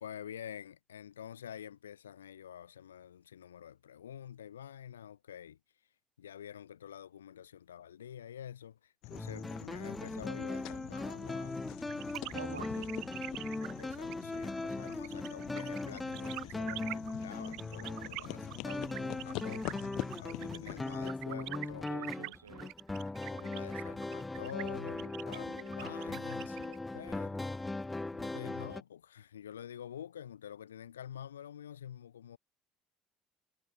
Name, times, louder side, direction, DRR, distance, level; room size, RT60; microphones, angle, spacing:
voice 1, 0.0-5.6 6.2-11.7 12.3-12.6 13.6-19.7 20.2-22.0 23.2-27.7 28.1-32.4, left 9 dB, 75° left, 1.9 m, -48 dB
sound 1, 9.0-21.1, left 22 dB, 60° left, 3.9 m, -46 dB
sound 2, 9.1-28.8, left 2 dB, 15° left, 1.6 m, -39 dB
sound 3, 11.9-26.8, right 21 dB, 55° right, 2.4 m, -45 dB
voice 2, 12.3-12.9 21.9-22.7, right 6 dB, 80° right, 2.3 m, -47 dB
figure-of-eight pair, 55°, 0 cm